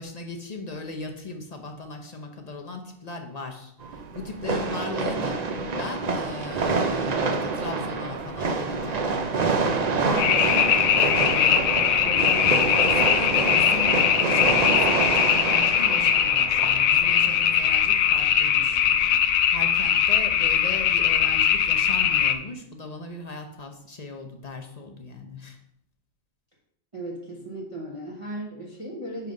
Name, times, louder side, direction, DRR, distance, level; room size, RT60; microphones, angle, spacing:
voice 1, 0.0-5.4 5.7-9.6 10.0-25.6, left 3 dB, 35° left, 3 dB, 0.8 m, -37 dB
sound 1, 3.8-19.2, right 4 dB, 50° right, 0.5 m, -27 dB
sound 2, 10.2-22.3, left 9 dB, 80° left, 1.0 m, -21 dB
voice 2, 26.9-29.3, right 1 dB, 25° right, -3 dB, 1.0 m, -36 dB
5.6 x 5.0 x 5.2 m, 0.72 s
omnidirectional pair, 1.4 m